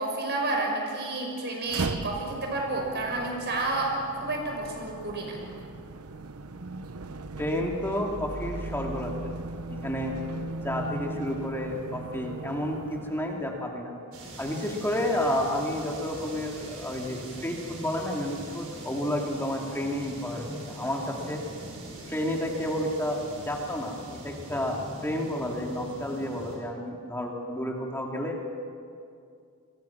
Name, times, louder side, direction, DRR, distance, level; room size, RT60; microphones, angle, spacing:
voice 1, 0.0-5.4, right 2 dB, 50° right, 1 dB, 5.9 m, -30 dB
sound 1, 1.7-13.7, right 2 dB, 90° right, 1.0 m, -38 dB
voice 2, 7.4-9.3 9.7-10.2 10.6-13.9 14.4-21.4 22.1-23.9 24.2-28.5, left 1 dB, 10° left, 0 dB, 2.8 m, -31 dB
sound 2, 14.1-26.6, right 1 dB, 70° right, 6.4 m, -42 dB
28.0 x 23.0 x 6.0 m, 2.3 s
head